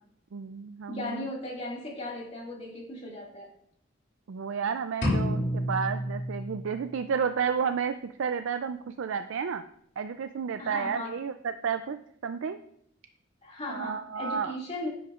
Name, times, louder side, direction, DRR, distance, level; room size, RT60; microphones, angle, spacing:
voice 1, 0.3-1.3 4.3-9.6 10.0-12.6 13.7-14.6, right 6 dB, 80° right, 9 dB, 0.4 m, -31 dB
voice 2, 0.9-3.5 10.6-11.2 13.4-14.9, left 1 dB, 35° left, -2 dB, 2.2 m, -37 dB
sound 1, 5.0-7.0, equal, 60° left, 2.6 m, -30 dB
10.5 x 8.5 x 2.5 m, 0.68 s
head